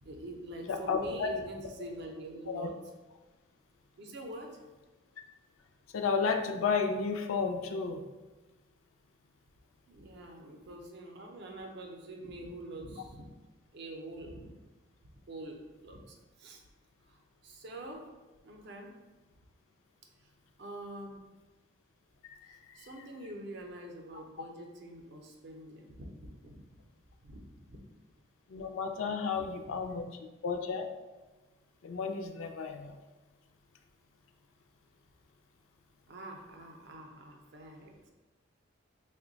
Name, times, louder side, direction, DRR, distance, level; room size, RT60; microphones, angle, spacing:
voice 1, 0.0-2.7 4.0-4.5 9.9-13.3 13.7-14.5 15.3-16.6 17.0-18.0 18.4-18.9 20.6-21.3 22.5-26.5 27.2-27.8 29.7-29.8 36.1-38.1, right 1 dB, 55° right, 2 dB, 0.5 m, -45 dB
voice 2, 0.7-1.3 2.5-2.7 5.9-8.0 22.2-22.9 28.5-30.1 30.4-30.9 31.8-33.0, left 5 dB, 80° left, 5 dB, 0.4 m, -32 dB
3.0 x 2.2 x 3.8 m, 1.2 s
head